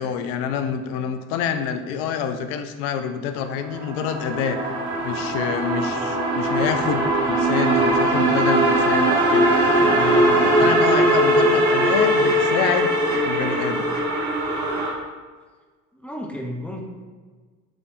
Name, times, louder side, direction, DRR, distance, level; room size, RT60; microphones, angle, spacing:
voice 1, 0.0-4.6 5.0-9.5 9.9-12.9 13.2-13.9, left 7 dB, 55° left, 8 dB, 0.5 m, -27 dB
sound 1, 3.6-14.9, right 1 dB, 40° right, 1.1 m, -20 dB
voice 2, 15.9-16.8, equal, 5° left, 0 dB, 0.5 m, -33 dB
4.6 x 3.3 x 2.6 m, 1.4 s
figure-of-eight pair, 65°, 44 cm